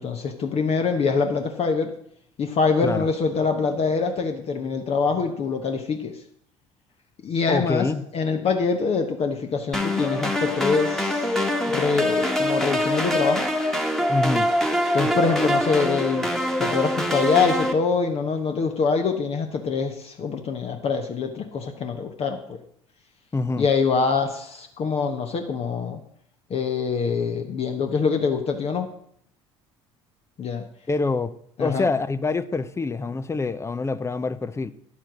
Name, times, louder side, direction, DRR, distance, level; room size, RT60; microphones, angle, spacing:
voice 1, 0.0-1.9 2.4-6.1 7.2-7.9 8.1-11.3 11.7-13.5 14.9-16.3 16.6-22.6 23.6-26.0 26.5-28.9 30.4-30.7 31.6-31.9, left 5 dB, 40° left, 1.1 m, -24 dB
voice 2, 7.5-8.0 14.1-14.5 23.3-23.7 30.9-31.3 31.6-34.7, left 3 dB, 20° left, 0.6 m, -25 dB
sound 1, 9.7-17.7, left 1 dB, ahead, 1.5 m, -24 dB
10.5 x 7.3 x 6.2 m
figure-of-eight pair, 60°, 15 cm